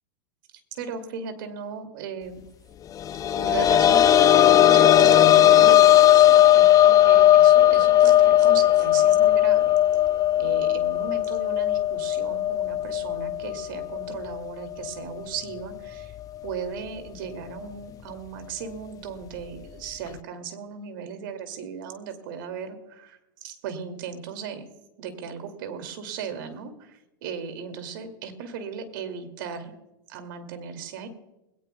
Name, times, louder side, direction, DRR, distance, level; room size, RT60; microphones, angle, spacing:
voice 1, 0.7-2.4 3.3-9.7 10.4-16.1 16.4-24.7 25.0-29.7 30.1-31.1, right 6 dB, 65° right, 7 dB, 2.5 m, -36 dB
sound 1, 3.0-14.5 14.8-14.9 16.5-16.6, left 12 dB, 30° left, 0.6 m, -17 dB
20.5 x 18.0 x 2.3 m, 0.94 s
hypercardioid pair, 100°, 12 cm